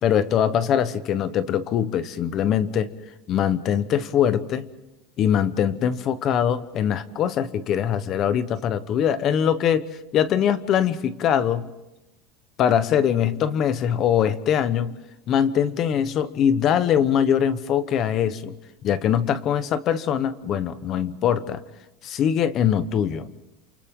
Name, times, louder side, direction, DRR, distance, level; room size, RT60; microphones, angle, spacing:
voice 1, 0.0-2.9 3.3-4.7 5.2-11.7 12.6-14.9 15.3-18.5 18.8-21.6 22.0-23.3, left 9 dB, 30° left, 14 dB, 1.0 m, -22 dB
29.0 x 28.0 x 3.8 m, 0.96 s
cardioid pair, 180°, 0 cm